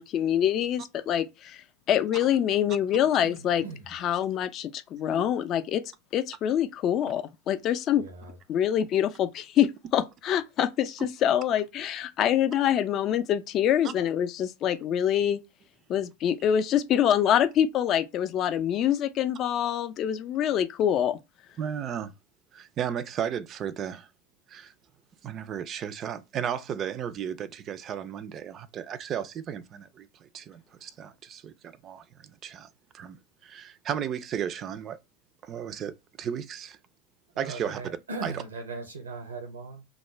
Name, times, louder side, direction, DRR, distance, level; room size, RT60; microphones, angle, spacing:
voice 1, 0.0-3.6 3.9-5.8 6.1-8.0 8.5-15.4 15.9-21.2, left 10 dB, 45° left, 0.4 m, -25 dB
voice 2, 3.2-3.9 8.0-8.4 37.3-39.8, right 3 dB, 85° right, 0.6 m, -39 dB
voice 3, 21.6-22.1 22.5-24.1 24.5-24.7 25.2-32.7 32.9-33.2 33.4-35.0 35.4-36.8 37.4-37.8 38.2-38.3, right 8 dB, 40° right, 0.3 m, -34 dB
2.4 x 2.1 x 3.0 m
figure-of-eight pair, 80°, 0 cm